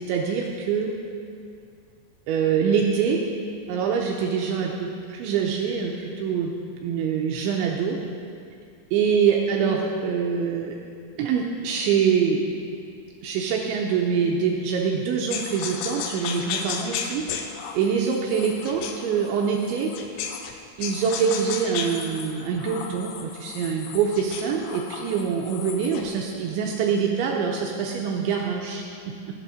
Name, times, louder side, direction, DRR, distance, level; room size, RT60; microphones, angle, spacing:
voice 1, 0.1-0.9 2.3-3.2 3.7-6.5 6.8-8.0 8.9-10.8 11.2-12.7 13.2-17.5 17.7-19.9 20.8-29.4, right 6 dB, 80° right, 0 dB, 2.9 m, -25 dB
sound 1, 15.3-20.5 20.8-26.1, left 7 dB, 80° left, 2.8 m, -34 dB
12.0 x 8.6 x 6.3 m, 2.4 s
omnidirectional pair, 5.7 m